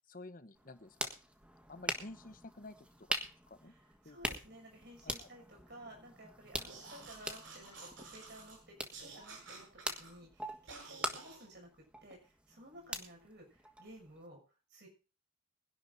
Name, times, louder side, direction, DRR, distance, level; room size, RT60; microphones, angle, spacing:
voice 1, 0.1-1.2 1.7-3.1 3.5-3.7 4.0-4.2 5.0-5.3, left 2 dB, 40° left, 10 dB, 0.9 m, -51 dB
sound 1, 0.5-14.3, right 1 dB, 5° right, 1.4 m, -44 dB
voice 2, 3.7-11.7 12.0-14.4 14.7-14.9, right 1 dB, 50° right, 2 dB, 6.6 m, -55 dB
sound 2, 6.7-8.6 8.9-10.1 10.7-11.5, right 4 dB, 70° right, 7.3 m, -51 dB
23.5 x 11.5 x 2.7 m, 0.34 s
head